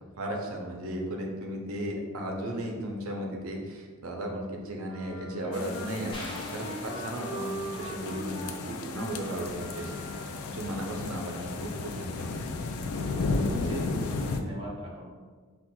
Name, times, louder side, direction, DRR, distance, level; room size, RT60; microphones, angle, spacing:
voice 1, 0.2-6.2 6.5-10.0 10.4-12.3, equal, 75° right, 1 dB, 0.6 m, -35 dB
Wind instrument woodwind instrument, 4.9-10.5, equal, 65° left, 1.1 m, -41 dB
sound 1, 5.5-14.4, left 3 dB, 90° left, 0.4 m, -34 dB
sound 2, 6.1-7.8, left 1 dB, 25° left, 0.5 m, -44 dB
voice 2, 13.4-15.1, equal, 25° right, -5 dB, 0.8 m, -40 dB
5.7 x 2.4 x 2.2 m, 1.5 s
head